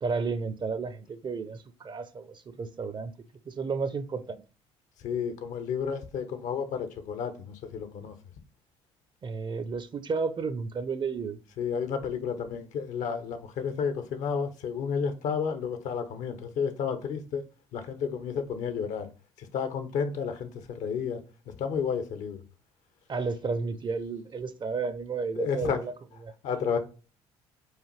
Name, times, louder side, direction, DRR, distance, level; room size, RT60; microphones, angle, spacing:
voice 1, 0.0-3.1 3.5-4.4 9.2-11.4 23.1-25.9 26.2-26.3, right 4 dB, 35° right, 0.6 m, -32 dB
voice 2, 5.0-8.1 11.6-17.4 17.7-19.1 19.4-22.4 25.4-25.8 26.4-26.8, left 6 dB, 65° left, 0.8 m, -31 dB
4.8 x 2.5 x 3.1 m
hypercardioid pair, 65°, 14 cm